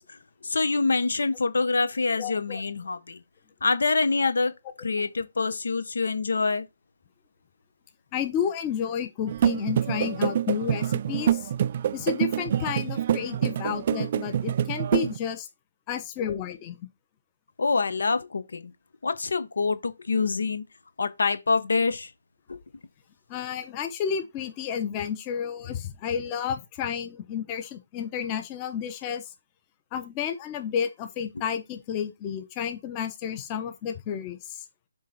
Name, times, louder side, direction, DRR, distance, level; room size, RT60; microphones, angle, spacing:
voice 1, 0.4-3.2 3.6-4.5 4.8-6.7 17.6-18.7 19.0-20.6 21.0-22.1 22.5-22.6, left 4 dB, 75° left, 1.0 m, -25 dB
voice 2, 2.2-2.6 8.1-11.5 11.9-15.5 15.9-16.9 23.3-29.3 29.9-34.7, left 8 dB, 25° left, 0.9 m, -31 dB
sound 1, 9.3-15.2, right 10 dB, 40° right, 0.3 m, -26 dB
7.4 x 3.9 x 4.2 m
hypercardioid pair, 155°, 0 cm